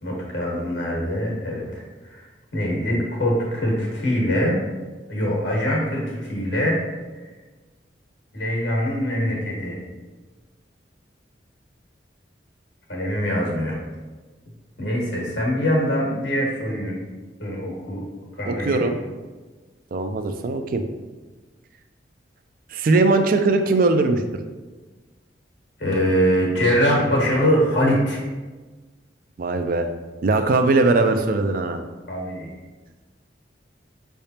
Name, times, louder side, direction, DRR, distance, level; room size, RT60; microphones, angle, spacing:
voice 1, 0.0-1.8 2.1-2.2 2.5-4.6 5.1-6.8 8.3-9.8 12.9-13.8 14.8-17.0 17.4-18.0 18.4-18.9 25.8-28.2 32.1-32.5, equal, 75° left, -3 dB, 1.5 m, -23 dB
voice 2, 18.5-18.9 19.9-20.8 22.7-24.2 29.4-29.9 30.2-31.8, right 3 dB, 50° right, 7 dB, 0.3 m, -20 dB
5.6 x 3.4 x 2.8 m, 1.3 s
head